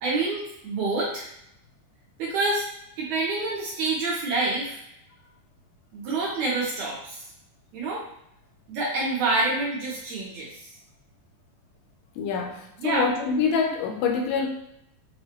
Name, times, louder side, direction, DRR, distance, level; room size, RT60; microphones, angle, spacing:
voice 1, 0.0-1.3 2.2-2.6 3.0-4.8 5.9-7.2 7.7-8.0 8.7-10.7 12.8-13.0, right 3 dB, 70° right, -5 dB, 2.0 m, -27 dB
voice 2, 12.2-14.5, left 5 dB, 80° left, 2 dB, 2.2 m, -25 dB
6.5 x 2.3 x 2.9 m, 0.77 s
omnidirectional pair, 4.0 m